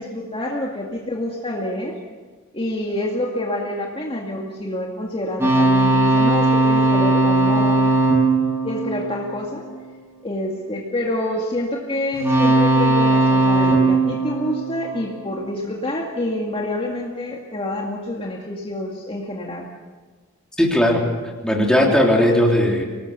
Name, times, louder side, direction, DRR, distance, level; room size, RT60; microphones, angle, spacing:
voice 1, 0.0-2.0 2.5-7.9 8.6-9.6 10.2-19.7, left 1 dB, 25° left, -1 dB, 2.1 m, -27 dB
sound 1, 5.4-9.8 12.1-15.4, right 2 dB, 15° right, 6.8 m, -18 dB
voice 2, 20.6-21.1 21.4-22.8, left 1 dB, 5° left, -1 dB, 3.6 m, -17 dB
25.0 x 18.5 x 6.9 m, 1.4 s
head